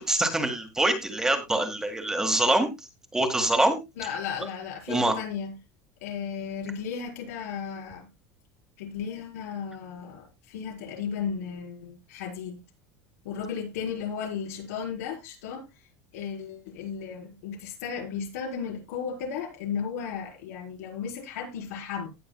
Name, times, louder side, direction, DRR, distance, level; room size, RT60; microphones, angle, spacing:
voice 1, 0.0-2.7 3.1-3.8 4.9-5.1, right 1 dB, 5° right, 1.7 m, -24 dB
voice 2, 4.0-5.5 6.0-8.1 8.8-12.6 13.2-15.7 16.1-22.1, left 7 dB, 90° left, 4.9 m, -35 dB
18.0 x 7.0 x 2.3 m
supercardioid pair, 155°, 8 cm